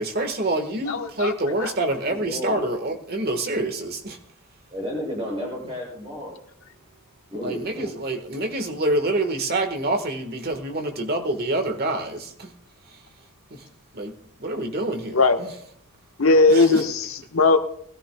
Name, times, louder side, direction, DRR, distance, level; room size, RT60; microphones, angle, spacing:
voice 1, 0.0-4.2 7.4-12.5 13.9-14.1 14.4-15.5 16.5-16.8, right 2 dB, 45° right, 6 dB, 1.5 m, -26 dB
voice 2, 0.9-1.3 1.6-1.7 15.1-15.4 16.2-17.6, left 3 dB, 70° left, 5 dB, 1.3 m, -18 dB
voice 3, 2.1-2.7 4.7-6.3 7.3-7.9, left 1 dB, 25° right, -3 dB, 6.8 m, -32 dB
20.5 x 14.0 x 2.3 m, 0.66 s
head